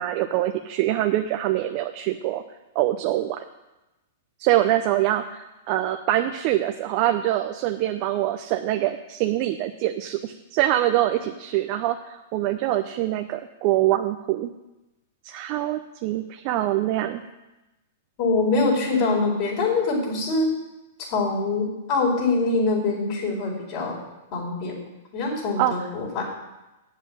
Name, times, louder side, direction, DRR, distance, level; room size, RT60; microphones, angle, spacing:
voice 1, 0.0-2.4 2.7-3.4 4.4-14.5 15.2-17.2 25.6-25.7, right 14 dB, 45° right, 6 dB, 0.6 m, -24 dB
voice 2, 18.2-20.5 21.0-24.0 24.3-24.8 25.1-26.2, left 3 dB, 50° left, -2 dB, 4.6 m, -24 dB
8.2 x 7.5 x 8.7 m, 1.0 s
hypercardioid pair, 120°, 0 cm